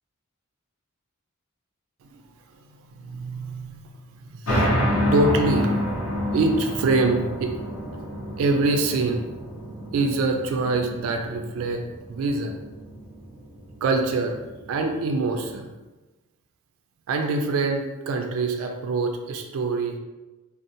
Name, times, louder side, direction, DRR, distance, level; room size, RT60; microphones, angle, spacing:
voice 1, 2.9-4.7 5.1-5.7 6.3-7.5 8.4-9.2 9.9-11.8 12.1-12.6 13.8-14.4 14.7-15.7 17.1-20.0, right 3 dB, 70° right, 4 dB, 0.3 m, -25 dB
sound 1, 4.5-15.6, equal, 70° left, 0.7 m, -29 dB
2.6 x 2.0 x 2.7 m, 1.1 s
head